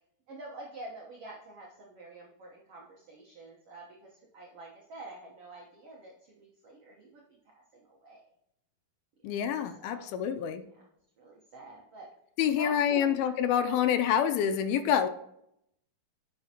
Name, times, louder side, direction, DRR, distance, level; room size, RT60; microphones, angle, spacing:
voice 1, 0.3-7.4 7.7-8.2 9.4-9.5 9.8-10.2 10.8-10.9 11.2-12.1 12.6-13.1, right 2 dB, 80° right, -2 dB, 1.3 m, -47 dB
voice 2, 9.2-10.6 12.4-15.1, left 9 dB, 80° left, 9 dB, 2.3 m, -27 dB
10.5 x 5.6 x 2.9 m, 0.76 s
omnidirectional pair, 4.4 m